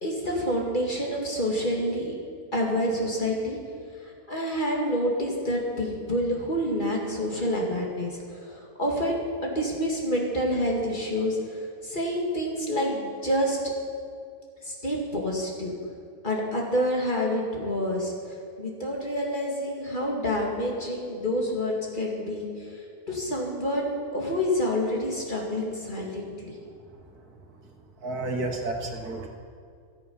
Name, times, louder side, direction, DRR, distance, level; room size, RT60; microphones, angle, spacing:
voice 1, 0.0-2.1 2.5-3.6 4.0-13.6 14.6-15.7 16.2-26.5, equal, 35° left, -1 dB, 2.4 m, -28 dB
voice 2, 28.0-29.3, right 2 dB, 90° right, 2 dB, 2.0 m, -31 dB
15.5 x 12.5 x 5.6 m, 2.2 s
omnidirectional pair, 1.6 m